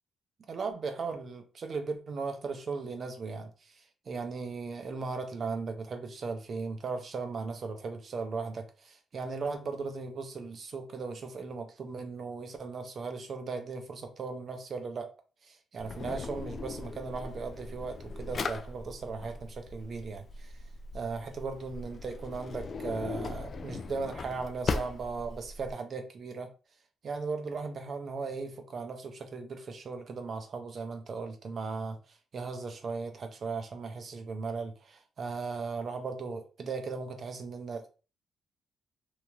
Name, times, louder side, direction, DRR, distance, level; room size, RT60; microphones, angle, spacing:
voice 1, 0.5-15.1 15.4-20.6 20.9-26.5 27.0-37.9, right 4 dB, 50° right, 0.6 m, -37 dB
Drawer open or close, 15.8-25.7, left 3 dB, 45° left, 0.3 m, -39 dB
3.0 x 2.8 x 2.3 m
cardioid pair, 90°, 0 cm